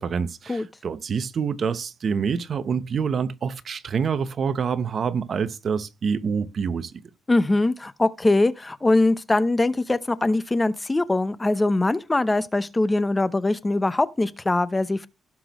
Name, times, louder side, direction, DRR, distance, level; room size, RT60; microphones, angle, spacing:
voice 1, 0.0-6.9, right 6 dB, 50° right, 0.9 m, -26 dB
voice 2, 7.3-15.1, left 2 dB, 20° left, 0.8 m, -22 dB
17.5 x 6.0 x 3.0 m
cardioid pair, 90°, 0 cm